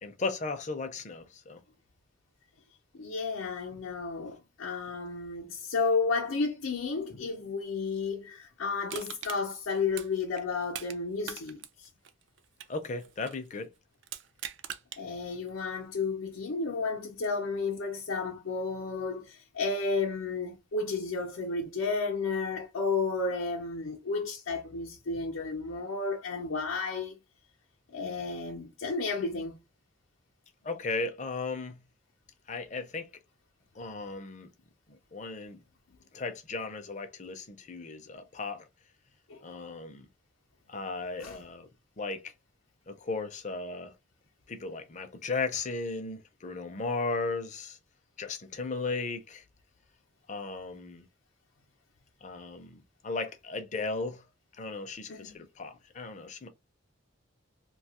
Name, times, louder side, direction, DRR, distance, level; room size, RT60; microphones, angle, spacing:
voice 1, 0.0-1.6 12.7-13.7 30.6-31.8 32.5-33.1 33.7-34.5 34.9-35.6 36.1-38.7 39.4-40.1 40.7-41.7 42.0-42.3 42.9-43.9 44.5-47.8 48.2-49.4 50.3-51.0 52.2-54.2 54.5-56.5, left 3 dB, 35° left, 0.5 m, -36 dB
voice 2, 2.9-11.9 15.0-27.1 27.9-29.5 39.3-39.4 41.2-41.4 55.1-55.4, left 4 dB, 90° left, 0.6 m, -32 dB
Crushing, 8.9-11.0 11.2-13.5 14.0-15.0 15.5-15.6, right 10 dB, 65° right, 0.4 m, -42 dB
2.7 x 2.3 x 2.8 m
head